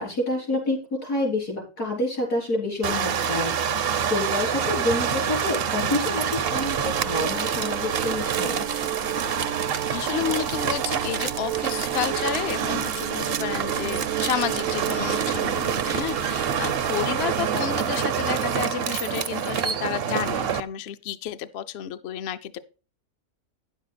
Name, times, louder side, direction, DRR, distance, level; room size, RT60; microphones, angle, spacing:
voice 1, 0.0-3.8 4.1-8.7, left 2 dB, 80° left, 4.6 m, -28 dB
sound 1, 2.8-20.6, right 7 dB, 55° right, 0.7 m, -27 dB
sound 2, 6.0-17.5, right 13 dB, 85° right, 1.1 m, -34 dB
voice 2, 9.9-22.6, left 10 dB, 60° left, 0.7 m, -31 dB
10.0 x 7.2 x 4.0 m
omnidirectional pair, 1.6 m